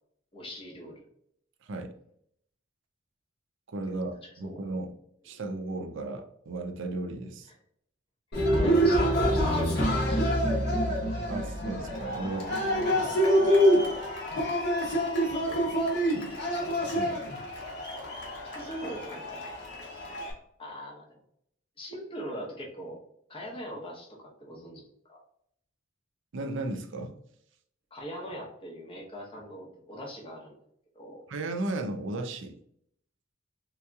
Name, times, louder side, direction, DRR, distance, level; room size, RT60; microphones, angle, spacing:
voice 1, 0.3-1.0 4.2-4.7 7.5-7.6 8.6-10.8 15.5-16.2 17.0-17.2 18.4-19.5 20.6-21.2 21.8-23.0 23.3-25.2 27.9-30.6 30.9-31.2, equal, 30° left, -2 dB, 0.9 m, -42 dB
voice 2, 3.7-4.9 5.2-7.5 11.3-13.1 16.9-17.2 26.3-27.2 31.3-32.6, right 2 dB, 70° right, 5 dB, 0.5 m, -35 dB
Cheering, 8.3-20.3, equal, 60° left, 1.1 m, -26 dB
3.8 x 2.8 x 2.3 m, 0.69 s
head